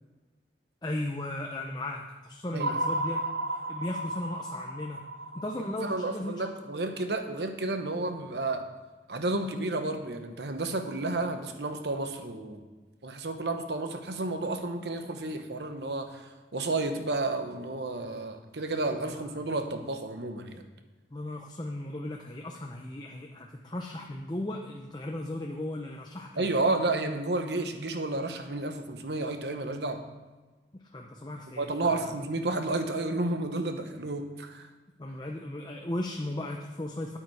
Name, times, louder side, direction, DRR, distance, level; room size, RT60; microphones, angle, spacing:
voice 1, 0.8-5.0 5.3-6.3 19.0-19.3 21.1-26.5 30.9-32.1 35.0-37.2, left 1 dB, 25° left, 1 dB, 0.6 m, -36 dB
sound 1, 2.6-6.8, right 1 dB, 60° right, 0.7 m, -34 dB
voice 2, 5.8-8.7 9.1-12.6 13.0-20.6 26.4-30.0 31.6-34.7, right 2 dB, 75° right, 7 dB, 1.0 m, -31 dB
9.1 x 8.8 x 4.8 m, 1.2 s
head